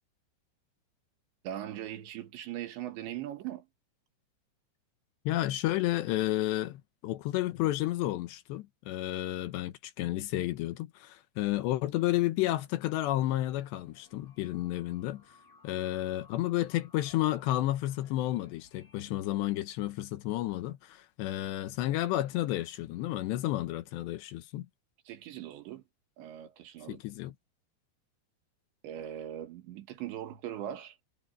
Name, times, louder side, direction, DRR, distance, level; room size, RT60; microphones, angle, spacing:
voice 1, 1.4-3.7 25.1-25.8 26.2-27.0 28.8-31.0, right 11 dB, 75° right, 4.0 m, -40 dB
voice 2, 5.3-15.2 15.6-24.7 26.9-27.3, left 15 dB, 80° left, 3.1 m, -31 dB
sound 1, 13.5-19.0, left 4 dB, 55° left, 5.7 m, -60 dB
omnidirectional pair, 5.2 m